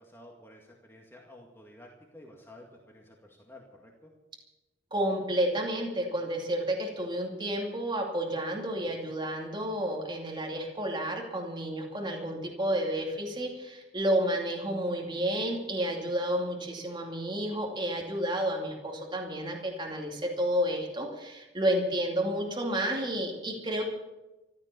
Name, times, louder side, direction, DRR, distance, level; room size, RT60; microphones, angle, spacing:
voice 1, 0.0-4.1, left 1 dB, 15° left, -1 dB, 2.0 m, -52 dB
voice 2, 4.9-23.8, right 1 dB, 25° right, 0 dB, 2.5 m, -31 dB
15.0 x 12.5 x 6.9 m, 1.0 s
head